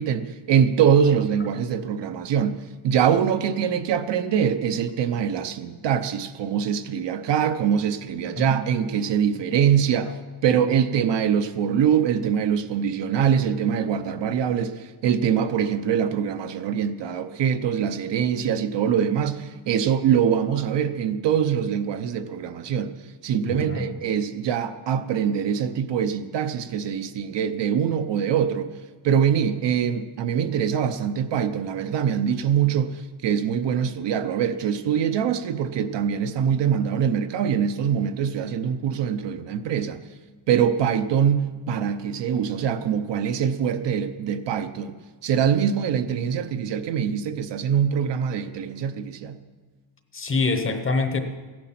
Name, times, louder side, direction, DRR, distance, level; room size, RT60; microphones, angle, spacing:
voice 1, 0.0-2.6 2.8-10.1 10.4-22.9 23.2-28.7 29.0-40.0 40.5-45.0 45.2-49.4, right 8 dB, 60° right, 9 dB, 0.8 m, -23 dB
voice 2, 23.4-23.9 50.1-51.2, left 3 dB, 25° left, 6 dB, 0.9 m, -25 dB
15.5 x 10.5 x 5.9 m, 1.4 s
cardioid pair, 175°, 49 cm